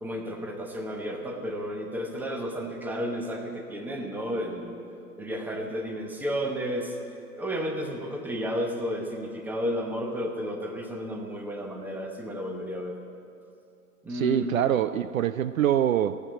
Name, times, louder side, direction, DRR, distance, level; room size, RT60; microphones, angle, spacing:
voice 1, 0.0-4.8 5.2-7.0 7.3-13.0 14.0-14.5, equal, 5° right, 3 dB, 1.0 m, -32 dB
voice 2, 14.1-16.2, right 10 dB, 60° right, 13 dB, 0.5 m, -24 dB
15.0 x 8.0 x 8.8 m, 2.6 s
hypercardioid pair, 130°, 48 cm